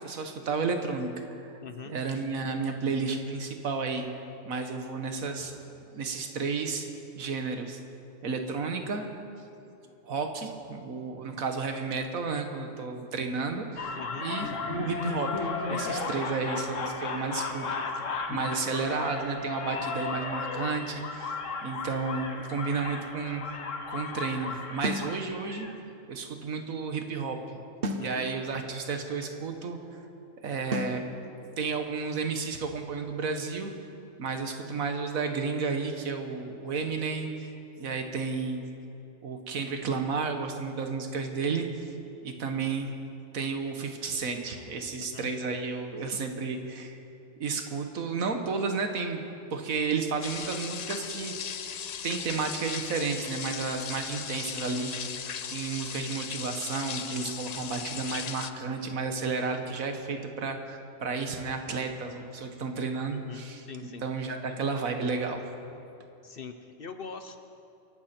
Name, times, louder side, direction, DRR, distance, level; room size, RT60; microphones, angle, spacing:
voice 1, 0.0-1.6 1.9-4.1 4.4-5.6 5.9-6.9 7.2-7.8 8.2-9.1 10.0-17.7 18.3-23.4 23.9-25.7 26.1-27.6 28.0-29.8 30.4-33.7 34.2-37.5 37.8-38.6 39.2-41.9 42.2-42.9 43.3-47.0 47.4-49.2 49.5-51.6 52.0-55.1 55.5-63.6 64.0-65.4, right 4 dB, 85° right, 5 dB, 1.7 m, -32 dB
voice 2, 1.6-2.0 14.0-14.3 27.9-28.3 45.0-45.3 63.1-64.1 66.2-67.4, left 5 dB, 50° left, 7 dB, 0.9 m, -43 dB
sound 1, 13.8-25.7, left 4 dB, 65° left, 1.4 m, -35 dB
sound 2, 24.8-25.1 27.8-28.1 30.7-31.0, right 1 dB, 45° right, 1.1 m, -31 dB
sound 3, 50.2-58.5, left 8 dB, 85° left, 0.3 m, -37 dB
26.5 x 11.5 x 4.4 m, 2.8 s
omnidirectional pair, 1.4 m